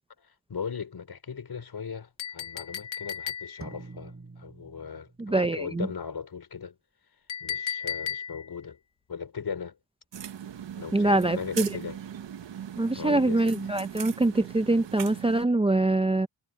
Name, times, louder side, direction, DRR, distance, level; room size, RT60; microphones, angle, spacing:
voice 1, 0.2-6.8 7.4-8.8 9.1-9.8 10.8-12.0 12.9-13.5, left 6 dB, 60° left, 4.5 m, -38 dB
Chink clink, 2.2-3.8 7.3-8.6, left 8 dB, 85° left, 1.5 m, -35 dB
sound 1, 3.6-5.5, right 3 dB, 30° right, 7.0 m, -46 dB
voice 2, 5.2-5.9 10.9-11.7 12.8-16.3, right 2 dB, 15° right, 0.6 m, -24 dB
sound 2, 10.1-15.5, right 9 dB, 70° right, 1.3 m, -39 dB
cardioid pair, 85°, 44 cm